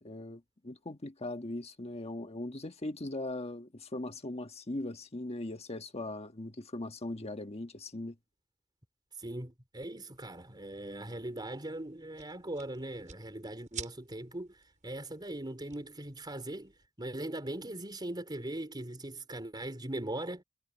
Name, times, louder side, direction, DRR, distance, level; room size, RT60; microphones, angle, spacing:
voice 1, 0.0-8.1, left 2 dB, 30° left, 1.4 m, -39 dB
voice 2, 9.2-16.7 17.0-20.4, right 1 dB, 20° right, 4.4 m, -40 dB
sound 1, 10.1-16.9, right 6 dB, 35° right, 4.9 m, -51 dB
head